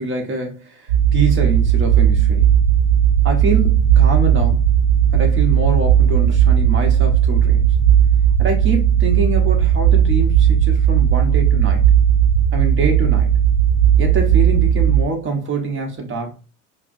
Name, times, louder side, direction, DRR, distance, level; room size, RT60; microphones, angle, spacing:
voice 1, 0.0-2.5 3.2-4.6 5.1-7.7 8.4-11.8 12.5-13.3 14.0-16.4, right 3 dB, 30° right, 1.2 m, -24 dB
sound 1, 0.9-15.0, right 9 dB, 70° right, 0.9 m, -15 dB
4.7 x 2.2 x 2.6 m
hypercardioid pair, 75°, 40 cm